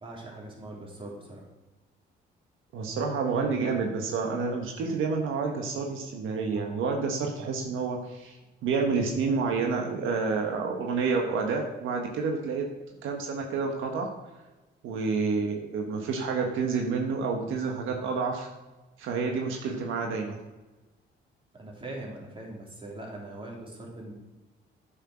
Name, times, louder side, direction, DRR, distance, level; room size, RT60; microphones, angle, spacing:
voice 1, 0.0-1.5 21.5-24.1, right 1 dB, 25° right, -1 dB, 3.4 m, -41 dB
voice 2, 2.7-12.7 13.0-14.1 14.8-18.5 19.0-20.4, right 4 dB, 85° right, 1 dB, 1.5 m, -29 dB
10.0 x 6.5 x 6.3 m, 1.1 s
cardioid pair, 90°, 20 cm